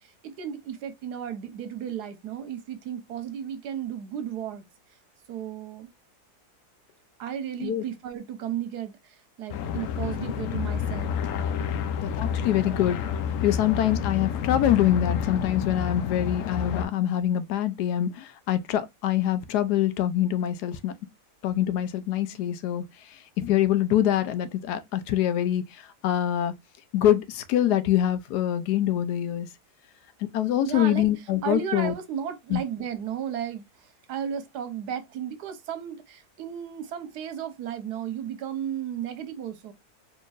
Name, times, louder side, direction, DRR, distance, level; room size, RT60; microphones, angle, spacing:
voice 1, 0.0-4.6 5.3-5.9 7.2-11.2 11.6-12.0 12.3-12.8 30.6-31.1 31.4-39.7, right 9 dB, 85° right, 1.4 m, -34 dB
sound 1, 9.5-16.9, left 8 dB, 65° left, 0.9 m, -29 dB
voice 2, 12.0-13.0 13.4-20.9 21.4-22.8 23.4-25.6 26.0-26.5 26.9-29.5 30.2-31.9 32.5-32.6, left 11 dB, 85° left, 1.2 m, -24 dB
4.4 x 3.0 x 2.4 m
omnidirectional pair, 1.7 m